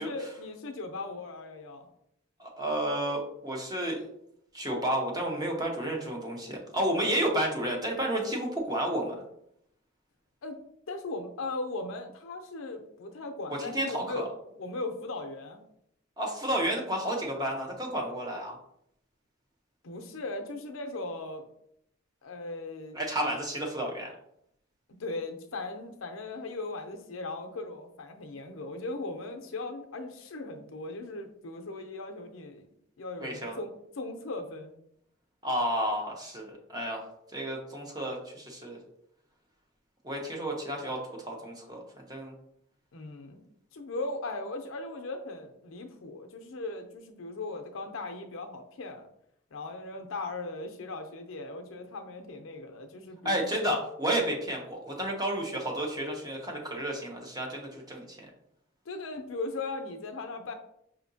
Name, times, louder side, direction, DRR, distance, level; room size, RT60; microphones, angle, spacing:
voice 1, 0.0-1.9 10.4-10.6 10.9-15.6 19.8-21.5 22.2-23.0 25.0-32.6 33.0-34.7 42.9-43.4 43.7-49.1 49.5-53.5 58.9-60.5, left 2 dB, 80° left, 5 dB, 0.6 m, -38 dB
voice 2, 2.4-4.0 4.5-9.2 13.5-14.3 16.2-18.6 22.9-24.1 33.2-33.6 35.4-38.8 40.0-42.3 53.2-58.3, right 1 dB, 20° right, 0 dB, 0.7 m, -31 dB
4.9 x 2.8 x 2.7 m, 0.74 s
head